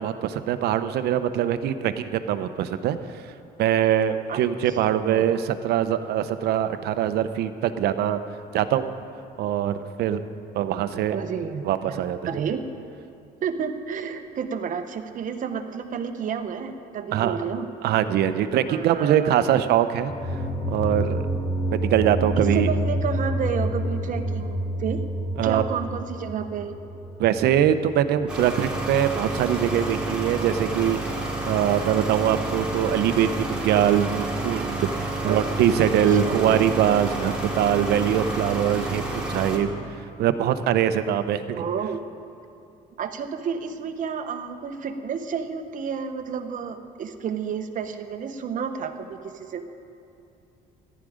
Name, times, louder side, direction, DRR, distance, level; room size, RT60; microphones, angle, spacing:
voice 1, 0.0-3.0 3.6-8.2 8.5-8.9 9.4-10.2 10.5-11.2 11.6-12.2 17.1-17.4 17.8-20.1 20.7-21.2 21.7-22.7 25.4-25.6 27.2-31.0 31.5-39.7 40.2-41.6, right 10 dB, 75° right, 11 dB, 0.7 m, -23 dB
voice 2, 4.3-5.3 11.1-12.6 13.4-17.7 18.6-19.6 22.4-25.0 25.4-26.7 35.2-35.4 36.1-36.6 41.5-42.0 43.0-49.6, right 7 dB, 50° right, 8 dB, 1.0 m, -31 dB
sound 1, 20.1-28.9, equal, 20° left, 1.1 m, -29 dB
sound 2, 28.3-39.6, right 2 dB, 5° right, 2.5 m, -30 dB
14.5 x 11.0 x 5.0 m, 2.7 s
cardioid pair, 110°, 17 cm